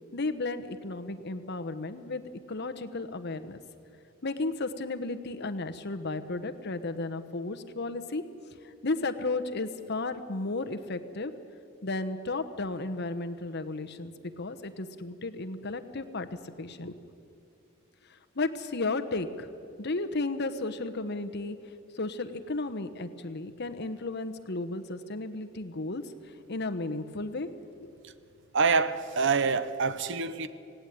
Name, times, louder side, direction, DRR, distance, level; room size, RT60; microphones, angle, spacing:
voice 1, 0.1-2.2 2.5-3.6 4.2-8.2 8.6-11.3 11.8-17.0 18.1-19.5 19.8-21.6 21.9-27.9, left 2 dB, 55° left, 1.0 m, -34 dB
voice 2, 28.5-30.5, right 5 dB, 60° right, 0.9 m, -26 dB
18.0 x 17.0 x 9.1 m
head